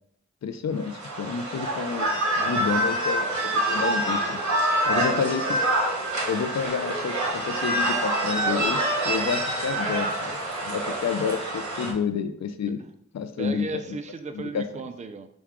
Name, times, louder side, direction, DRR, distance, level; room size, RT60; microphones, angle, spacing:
voice 1, 0.4-4.4 4.9-5.6 6.3-8.8 9.0-10.4 10.6-12.8 13.1-13.7 14.3-14.8, left 6 dB, 65° left, 9 dB, 0.5 m, -29 dB
sound 1, 0.8-11.9, right 1 dB, 70° right, 1.2 m, -26 dB
voice 2, 4.8-5.3 13.4-15.3, right 4 dB, 25° right, 9 dB, 0.4 m, -34 dB
6.0 x 2.3 x 3.6 m, 0.70 s
cardioid pair, 55°, 29 cm